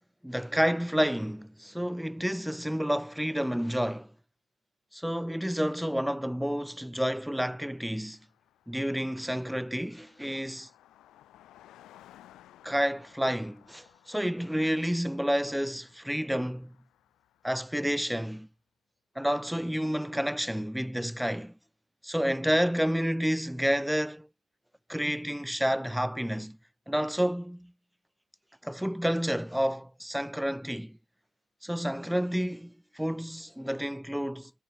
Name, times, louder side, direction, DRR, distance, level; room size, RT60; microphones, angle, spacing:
voice 1, 0.2-4.1 4.9-8.2 8.7-10.7 12.6-16.8 17.4-18.5 19.2-21.5 22.0-24.3 24.9-26.6 26.9-27.7 28.6-31.0 31.6-34.5, equal, ahead, 0.3 m, -30 dB
Car passing by, 6.8-6.9 7.1-18.1, left 13 dB, 85° left, 0.8 m, -59 dB
cardioid pair, 90°, 0 cm